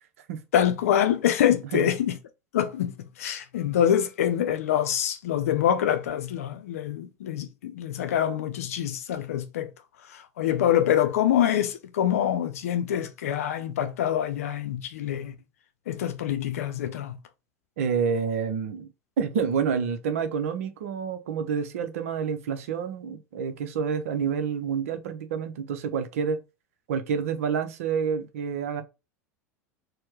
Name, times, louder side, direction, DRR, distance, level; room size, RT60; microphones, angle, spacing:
voice 1, 0.5-2.2 2.5-9.7 10.1-15.3 15.9-17.2, left 10 dB, 60° left, 0.7 m, -25 dB
voice 2, 17.8-18.9 19.2-26.4 26.9-28.8, right 6 dB, 60° right, 0.8 m, -28 dB
4.4 x 2.3 x 4.6 m
figure-of-eight pair, 80°, 9 cm